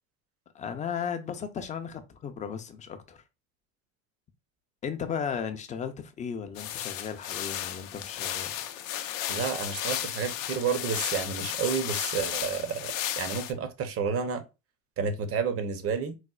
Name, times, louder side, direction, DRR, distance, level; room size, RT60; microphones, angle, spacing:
voice 1, 0.5-3.2 4.8-8.5, left 7 dB, 20° left, 0.3 m, -35 dB
sound 1, 6.6-13.5, left 11 dB, 90° left, 0.5 m, -34 dB
voice 2, 9.3-14.4 15.0-16.2, right 6 dB, 35° right, 0.6 m, -30 dB
4.1 x 2.1 x 2.3 m
supercardioid pair, 105°, 39 cm